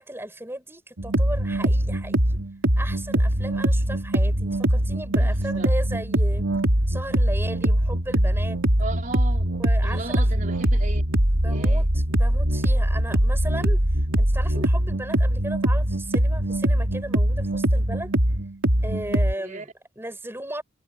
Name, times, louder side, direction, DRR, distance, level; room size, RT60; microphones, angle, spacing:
voice 1, 0.0-2.4 2.8-6.4 6.9-8.6 9.6-10.3 11.4-13.8 14.2-18.1 18.8-20.6, right 1 dB, 10° right, 5.3 m, -36 dB
sound 1, 1.0-19.3, right 1 dB, 85° right, 3.3 m, -22 dB
voice 2, 5.2-5.7 8.8-9.5 9.8-11.1 11.4-11.8 19.4-19.6, right 3 dB, 40° right, 4.4 m, -36 dB
head